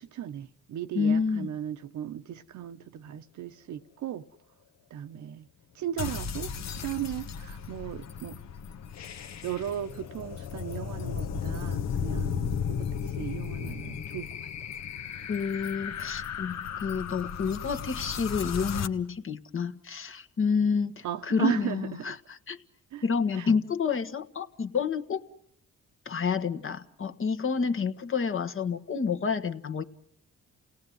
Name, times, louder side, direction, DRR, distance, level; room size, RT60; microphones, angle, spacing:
voice 1, 0.0-4.2 4.9-5.5 5.7-8.4 9.4-14.3 21.0-22.2 22.9-23.0 23.4-23.5, right 11 dB, 70° right, 1.1 m, -36 dB
voice 2, 0.9-1.5 15.3-22.6 23.0-25.2 26.0-29.8, left 5 dB, 45° left, 1.5 m, -29 dB
sound 1, 6.0-18.9, left 7 dB, 65° left, 1.3 m, -35 dB
29.0 x 18.0 x 9.4 m
cardioid pair, 90°, 30 cm